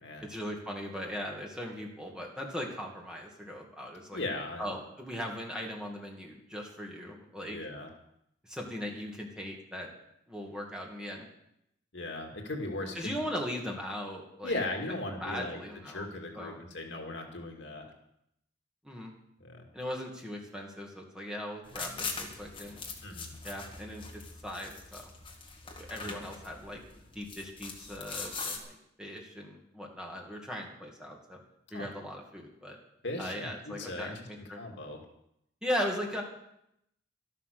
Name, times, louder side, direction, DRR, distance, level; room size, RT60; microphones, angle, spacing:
voice 1, 0.2-4.2 4.6-7.6 8.4-9.9 10.3-11.3 12.9-14.6 15.2-16.1 16.3-16.6 18.8-19.1 19.7-22.8 23.4-25.1 25.6-26.8 27.1-31.4 31.7-32.8 33.2-34.6 35.6-36.2, equal, 5° right, -1 dB, 2.3 m, -39 dB
voice 2, 4.1-4.7 7.5-7.9 11.9-13.2 14.4-17.9 19.4-19.6 23.0-23.3 26.0-26.2 31.7-31.9 33.0-34.3 34.6-35.0, left 2 dB, 75° left, 2 dB, 2.4 m, -38 dB
sound 1, 21.7-28.6, left 4 dB, 25° left, 1.8 m, -42 dB
12.5 x 11.5 x 6.8 m, 0.79 s
head